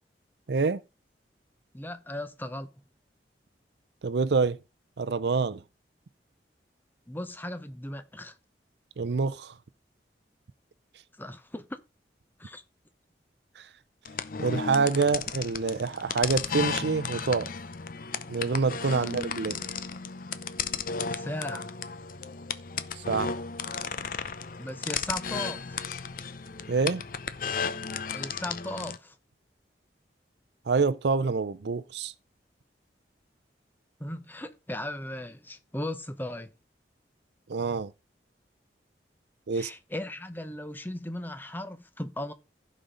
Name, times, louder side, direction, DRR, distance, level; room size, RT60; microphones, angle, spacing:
voice 1, 0.5-0.8 4.0-4.6 5.0-5.6 9.0-9.5 13.6-13.7 14.4-17.5 18.3-19.6 23.0-23.4 26.7-27.0 30.7-32.1 37.5-37.9 39.5-39.7, right 4 dB, 70° right, 0.5 m, -26 dB
voice 2, 1.7-2.7 7.1-8.4 11.2-11.8 12.4-12.6 18.9-19.2 21.0-21.7 24.6-25.8 28.1-29.2 34.0-36.5 39.5-42.3, left 1 dB, 10° left, 0.9 m, -37 dB
sound 1, 14.1-29.0, left 6 dB, 50° left, 0.7 m, -34 dB
15.5 x 5.2 x 3.8 m
head